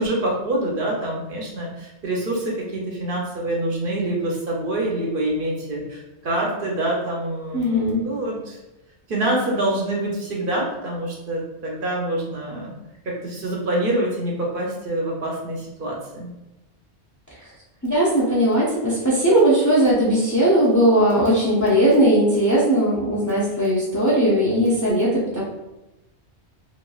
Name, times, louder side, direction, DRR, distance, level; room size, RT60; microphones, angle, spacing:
voice 1, 0.0-8.6 9.1-12.7 13.0-16.3, right 1 dB, 60° right, -2 dB, 0.7 m, -26 dB
voice 2, 7.5-8.0 17.8-25.4, equal, 25° left, -6 dB, 0.4 m, -18 dB
3.0 x 2.4 x 2.3 m, 0.96 s
omnidirectional pair, 1.1 m